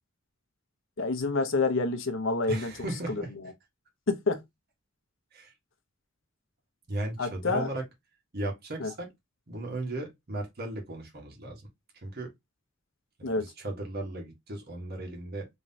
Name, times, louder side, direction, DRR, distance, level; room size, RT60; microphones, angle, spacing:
voice 1, 1.0-2.7 3.1-3.2 4.1-4.4 7.2-7.7 8.8-8.9 13.2-13.5, left 3 dB, 65° left, 0.8 m, -28 dB
voice 2, 2.5-3.3 5.3-5.5 6.9-7.8 8.3-9.1 9.5-11.6 12.0-12.3 13.2-15.5, right 2 dB, 50° right, 1.4 m, -36 dB
3.7 x 3.2 x 2.7 m
head